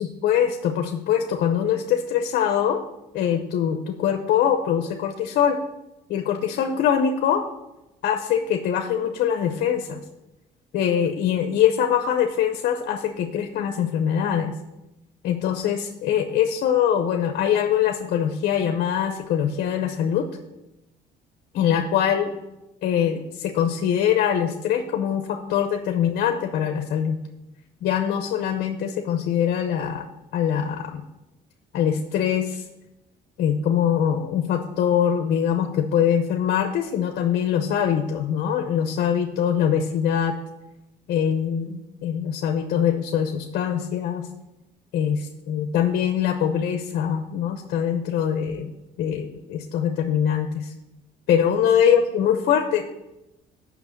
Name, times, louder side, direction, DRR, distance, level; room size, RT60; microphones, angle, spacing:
voice 1, 0.2-2.8 3.1-5.6 6.1-7.5 8.0-10.0 10.7-14.5 15.2-20.3 21.5-22.3 22.8-27.2 27.8-30.0 30.3-31.0 31.7-32.6 33.4-40.4 41.1-44.3 44.9-45.2 45.5-48.7 49.0-50.7 51.3-52.8, left 9 dB, 65° left, 6 dB, 0.8 m, -23 dB
6.0 x 5.9 x 7.1 m, 0.95 s
cardioid pair, 110°, 17 cm